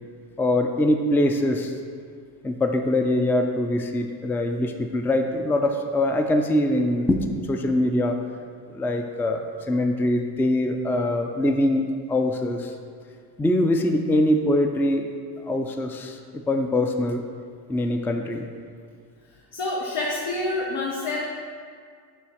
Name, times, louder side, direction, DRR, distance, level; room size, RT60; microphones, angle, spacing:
voice 1, 0.4-1.7 2.4-8.2 8.7-12.7 13.4-15.1 15.4-17.2 17.7-18.5, left 1 dB, 5° left, 5 dB, 0.3 m, -23 dB
voice 2, 19.5-21.2, left 2 dB, 70° left, -3 dB, 1.0 m, -27 dB
7.5 x 3.1 x 5.7 m, 2.1 s
supercardioid pair, 75°, 47 cm